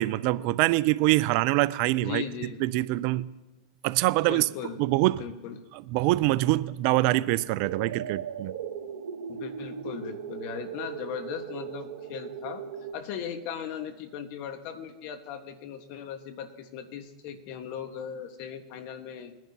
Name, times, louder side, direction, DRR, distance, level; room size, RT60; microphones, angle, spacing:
voice 1, 0.0-2.2 2.6-3.3 3.8-4.5 4.8-5.2 5.7-8.5, right 18 dB, 50° right, 0.4 m, -24 dB
voice 2, 2.0-2.6 4.2-4.8 5.2-5.6 9.3-12.7 12.9-19.3, left 8 dB, 50° left, 1.5 m, -38 dB
sound 1, 7.6-12.9, right 7 dB, 75° right, 1.1 m, -38 dB
21.5 x 10.5 x 2.9 m
hypercardioid pair, 115°, 3 cm